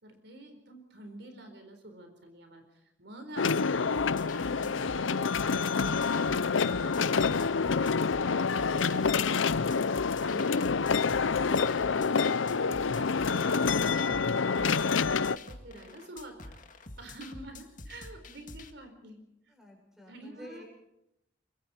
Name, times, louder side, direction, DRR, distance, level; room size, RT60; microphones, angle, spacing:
voice 1, 0.0-9.9 10.2-19.5 20.1-20.6, right 1 dB, 60° right, 6 dB, 4.3 m, -48 dB
sound 1, 3.4-15.4, left 5 dB, 90° left, 0.6 m, -27 dB
sound 2, 3.9-18.7, left 2 dB, 45° left, 2.1 m, -47 dB
voice 2, 19.5-20.6, equal, 5° right, 1 dB, 7.3 m, -52 dB
24.5 x 24.0 x 4.4 m, 0.83 s
head